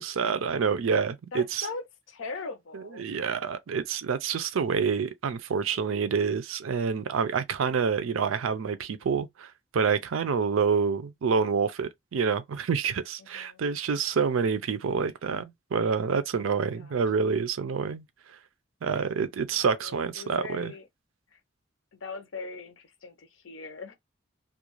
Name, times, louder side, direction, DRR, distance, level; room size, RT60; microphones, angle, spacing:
voice 1, 0.0-1.7 3.0-18.0 18.8-20.7, right 5 dB, 85° right, 0.4 m, -27 dB
voice 2, 1.3-3.1 13.2-13.6 16.8-17.0 19.5-20.9 21.3-21.4 21.9-23.9, left 4 dB, 75° left, 0.6 m, -40 dB
2.4 x 2.2 x 3.0 m
head